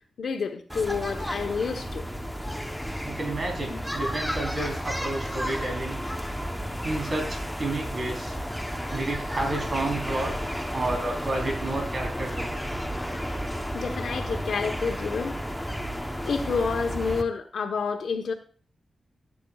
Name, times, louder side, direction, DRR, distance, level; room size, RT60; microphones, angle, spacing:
voice 1, 0.2-2.0 13.7-15.4 16.2-18.3, left 5 dB, 80° left, 1.0 m, -29 dB
sound 1, 0.7-17.2, equal, ahead, 0.9 m, -32 dB
voice 2, 3.0-6.0 6.8-8.4 8.9-10.3 10.7-12.6, right 2 dB, 45° right, 3.8 m, -31 dB
16.0 x 8.5 x 2.4 m
wide cardioid pair, 90°, 0 cm